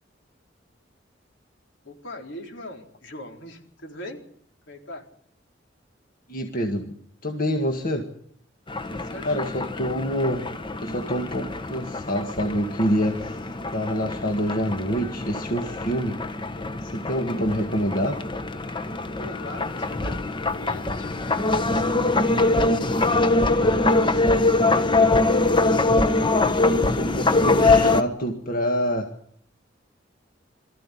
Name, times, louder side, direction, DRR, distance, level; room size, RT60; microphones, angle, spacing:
voice 1, 1.8-4.3 4.7-5.1 8.9-9.6 19.2-20.2 20.5-24.9, left 1 dB, 75° left, 2 dB, 4.2 m, -41 dB
voice 2, 6.3-7.0 7.2-8.1 9.2-10.5 10.8-13.4 13.7-16.2 16.8-18.2 26.6-29.1, equal, 50° left, 3 dB, 1.9 m, -26 dB
sound 1, 8.7-28.0, left 2 dB, 25° left, 1.0 m, -23 dB
23.5 x 14.5 x 9.9 m, 0.67 s
head